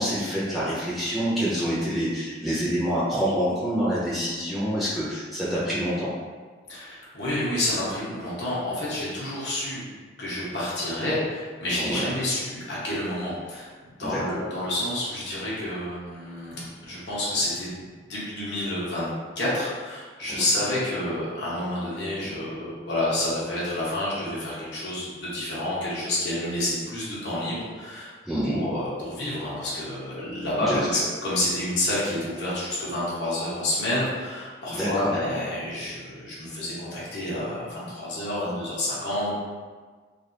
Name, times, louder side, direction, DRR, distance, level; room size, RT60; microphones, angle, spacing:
voice 1, 0.0-6.1 11.8-12.1 14.0-14.4 20.3-20.4 28.2-28.6 30.7-30.8 34.7-35.1, equal, ahead, -11 dB, 0.8 m, -27 dB
voice 2, 6.7-9.8 10.2-13.7 14.0-28.1 28.4-39.3, left 1 dB, 70° left, -8 dB, 1.1 m, -29 dB
3.4 x 2.6 x 2.6 m, 1.5 s
head